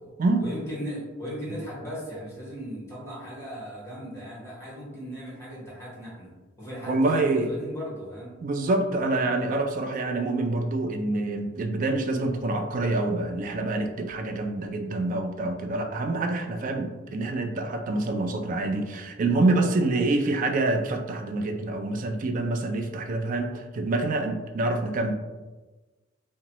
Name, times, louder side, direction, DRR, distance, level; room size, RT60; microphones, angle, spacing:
voice 1, 0.4-6.3 6.6-8.4, equal, 15° left, -6 dB, 1.1 m, -37 dB
voice 2, 6.9-7.5 8.4-25.1, right 2 dB, 40° right, 5 dB, 0.3 m, -26 dB
2.8 x 2.2 x 2.9 m, 1.2 s
head